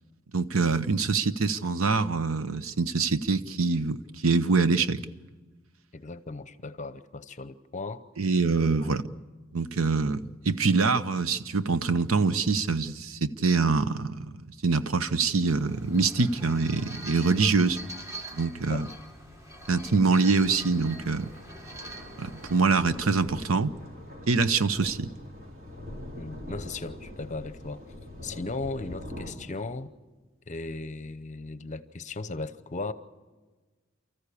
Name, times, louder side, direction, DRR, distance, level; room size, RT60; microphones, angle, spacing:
voice 1, 0.3-5.0 8.2-9.1 9.5-10.2 10.4-14.3 14.6-17.8 18.3-18.9 19.7-21.3 22.2-23.7 24.3-25.1, right 4 dB, 85° right, 12 dB, 0.8 m, -25 dB
voice 2, 5.9-8.0 8.8-9.0 18.7-18.9 26.2-27.8 28.2-29.9 30.5-32.9, left 3 dB, 35° left, 13 dB, 0.8 m, -37 dB
sound 1, 15.4-22.9, right 1 dB, 15° right, 1.9 m, -44 dB
sound 2, 18.5-29.3, left 1 dB, 45° right, 4.1 m, -44 dB
29.0 x 14.0 x 8.4 m, 1.3 s
head